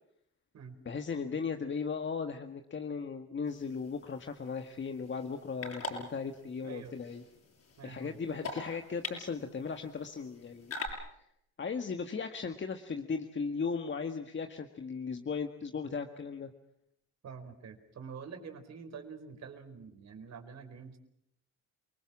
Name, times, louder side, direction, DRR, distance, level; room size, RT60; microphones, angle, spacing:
voice 1, 0.8-7.2 7.8-10.7 11.6-16.5, left 5 dB, 40° left, 6 dB, 1.8 m, -37 dB
sound 1, 3.5-10.9, left 3 dB, 55° left, 7.0 m, -45 dB
voice 2, 7.8-8.5 17.2-21.0, right 6 dB, 60° right, 6 dB, 4.6 m, -47 dB
29.0 x 20.0 x 7.4 m, 0.74 s
cardioid pair, 90°, 30 cm